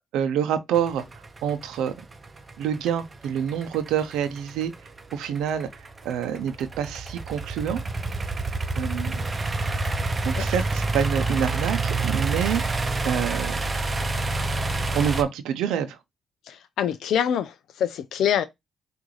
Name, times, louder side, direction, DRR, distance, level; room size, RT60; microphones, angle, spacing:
voice 1, 0.1-1.9 2.6-4.7 5.1-7.8 8.7-9.2 10.2-13.6 14.9-16.0, right 8 dB, 90° right, 0.6 m, -27 dB
sound 1, 0.7-15.2, right 3 dB, 30° right, 0.7 m, -28 dB
voice 2, 16.5-18.4, left 9 dB, 75° left, 0.4 m, -25 dB
6.2 x 2.6 x 3.1 m
cardioid pair, 90°, 0 cm